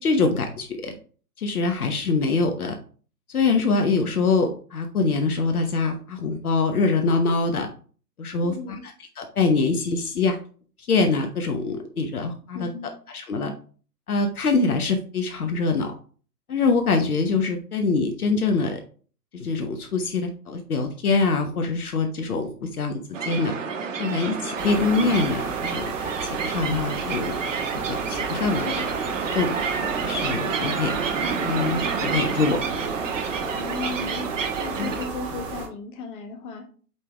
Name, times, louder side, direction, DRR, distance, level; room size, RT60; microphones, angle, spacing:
voice 1, 0.0-0.9 1.4-2.8 3.3-7.7 8.2-10.4 10.9-12.7 13.1-13.5 14.1-15.9 16.5-18.8 19.3-23.5 24.0-25.9 26.2-27.3 27.9-28.9 29.3-29.6 30.0-31.0 31.4-32.6 34.8-34.9, left 4 dB, 65° left, 5 dB, 1.0 m, -24 dB
voice 2, 8.4-8.8 12.5-12.9 28.4-28.9 33.5-34.3 34.6-36.7, left 5 dB, 35° left, 4 dB, 1.5 m, -35 dB
sound 1, 23.1-35.1, right 5 dB, 50° right, 1.4 m, -29 dB
sound 2, 24.6-35.7, right 5 dB, 20° right, 1.1 m, -33 dB
8.3 x 3.4 x 3.3 m, 0.41 s
figure-of-eight pair, 120°, 47 cm